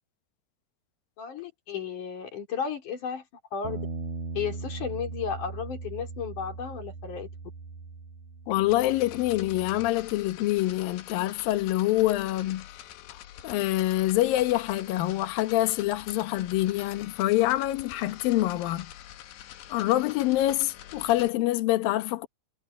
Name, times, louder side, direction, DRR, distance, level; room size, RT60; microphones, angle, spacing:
voice 1, 1.2-3.2 3.5-3.8 4.3-7.3, left 7 dB, 40° left, 5.1 m, -34 dB
Bass guitar, 3.6-9.9, right 4 dB, 35° right, 5.2 m, -39 dB
voice 2, 8.5-12.7 13.1-18.9 19.7-22.3, left 15 dB, 90° left, 2.0 m, -26 dB
sound 1, 8.6-21.3, left 12 dB, 65° left, 3.0 m, -46 dB
omnidirectional pair, 6.0 m